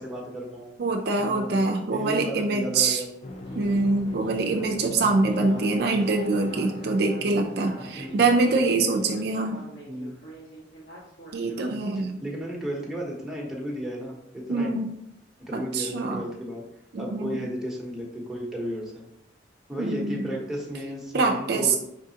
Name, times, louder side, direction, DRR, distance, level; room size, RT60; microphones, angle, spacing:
voice 1, 0.0-0.7 1.2-1.6 1.9-3.1 5.5-6.0 7.9-8.3 9.9-10.1 11.7-14.7 15.5-16.7 17.0-19.1 19.7-21.8, equal, ahead, -4 dB, 0.9 m, -34 dB
voice 2, 0.8-3.0 3.5-9.6 11.3-12.2 14.5-14.9 15.5-16.2 16.9-17.4 19.8-20.3 21.1-21.8, right 3 dB, 55° right, 2 dB, 0.4 m, -24 dB
sound 1, 3.2-9.3, left 1 dB, 35° left, 0.5 m, -41 dB
Speech synthesizer, 3.5-11.8, right 1 dB, 65° left, 1.6 m, -45 dB
4.8 x 3.6 x 2.8 m, 0.80 s
head